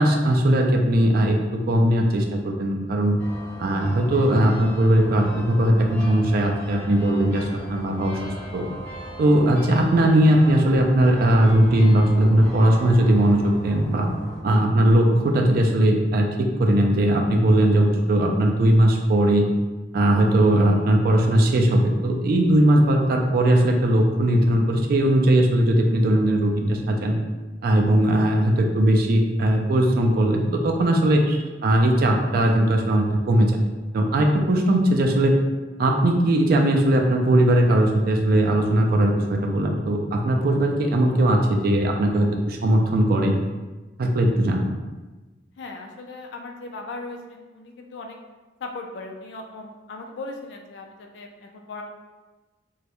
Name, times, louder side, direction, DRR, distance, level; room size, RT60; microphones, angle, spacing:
voice 1, 0.0-3.2 3.6-8.2 8.5-8.7 9.2-14.1 14.4-19.5 19.9-27.2 27.6-33.5 33.9-35.3 35.8-43.3 44.0-44.7, right 1 dB, 50° right, 2 dB, 0.3 m, -19 dB
sound 1, 3.2-14.4, equal, 10° left, 0.5 m, -39 dB
voice 2, 45.6-48.2 48.6-51.8, left 3 dB, 60° left, 2 dB, 0.3 m, -38 dB
2.2 x 2.0 x 2.8 m, 1.2 s
head